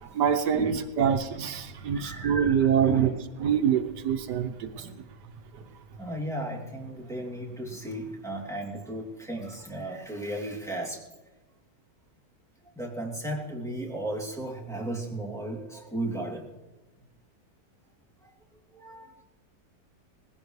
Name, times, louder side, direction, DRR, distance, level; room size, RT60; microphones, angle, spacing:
voice 1, 0.0-3.1 3.4-4.9, right 8 dB, 80° right, 8 dB, 1.5 m, -25 dB
voice 2, 0.5-0.8 1.9-3.1 6.0-11.0 12.8-16.4 18.7-19.1, right 1 dB, ahead, -3 dB, 2.6 m, -35 dB
20.0 x 16.0 x 3.2 m, 1.1 s
omnidirectional pair, 1.8 m